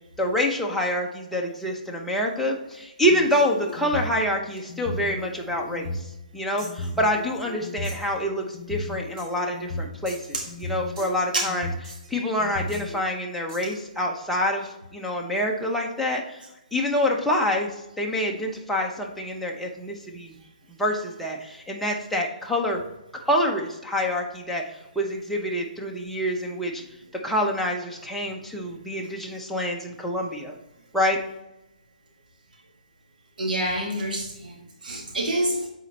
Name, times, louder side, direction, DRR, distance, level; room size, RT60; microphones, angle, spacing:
voice 1, 0.2-6.0 6.3-11.7 12.1-16.4 16.7-17.7 18.0-20.3 20.8-22.8 23.2-24.6 24.9-26.8 27.2-30.5 30.9-31.2, left 1 dB, ahead, -2 dB, 0.9 m, -26 dB
sound 1, 3.0-4.2 4.7-6.0 6.6-7.9 8.5-9.9 10.5-11.9 12.4-13.0, left 2 dB, 30° left, 1.3 m, -34 dB
sound 2, 6.6-6.9 7.8-8.2 9.2-9.4 10.0-10.7 11.0-11.3 11.8-12.2 12.7-12.9 13.5-13.8, right 2 dB, 40° right, 2.1 m, -46 dB
voice 2, 33.4-34.5 34.8-35.7, right 1 dB, 80° right, -2 dB, 1.8 m, -27 dB
8.1 x 4.2 x 2.9 m, 0.92 s
hypercardioid pair, 140°, 5 cm